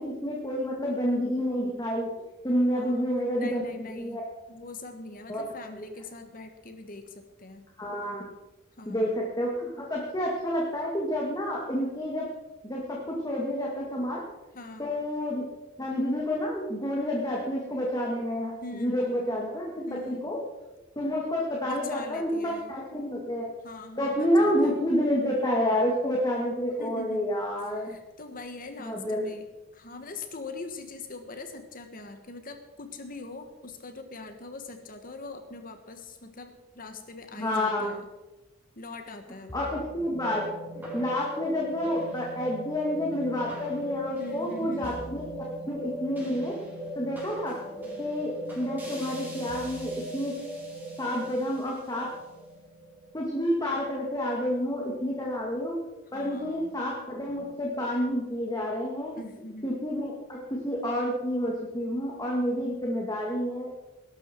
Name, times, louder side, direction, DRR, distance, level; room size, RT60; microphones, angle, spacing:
voice 1, 0.0-2.1 2.4-4.3 5.3-5.4 7.8-8.2 8.9-12.3 12.6-14.2 14.8-15.4 15.8-18.5 18.8-20.4 21.0-23.5 24.0-28.0 28.8-29.3 37.3-37.9 39.5-46.6 47.0-47.6 48.0-50.3 51.0-52.1 53.1-55.8 56.1-59.2 59.6-63.7, equal, 20° left, -2 dB, 2.2 m, -29 dB
voice 2, 2.7-3.0 3.3-4.2 4.5-7.7 8.8-9.2 14.5-14.9 18.6-19.3 19.9-20.3 21.6-22.8 23.6-24.8 26.8-27.4 27.8-29.5 29.7-38.1 38.7-39.7 44.2-45.0 56.1-56.7 59.2-59.7, left 2 dB, 45° left, 7 dB, 1.4 m, -42 dB
sound 1, 39.5-53.9, right 1 dB, 10° right, 4.9 m, -39 dB
19.5 x 12.0 x 4.6 m, 1.1 s
head